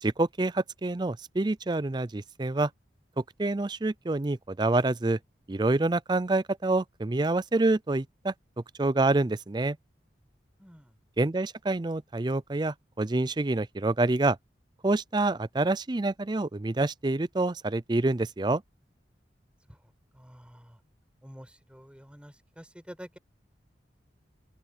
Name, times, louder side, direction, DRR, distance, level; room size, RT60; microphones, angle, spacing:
voice 1, 0.0-2.7 3.2-5.2 5.5-8.3 8.8-9.8 11.2-14.4 14.8-18.6, right 2 dB, 25° right, 0.5 m, -27 dB
voice 2, 10.6-11.0 19.7-20.8 21.2-23.2, equal, 5° right, 6.9 m, -49 dB
open air
head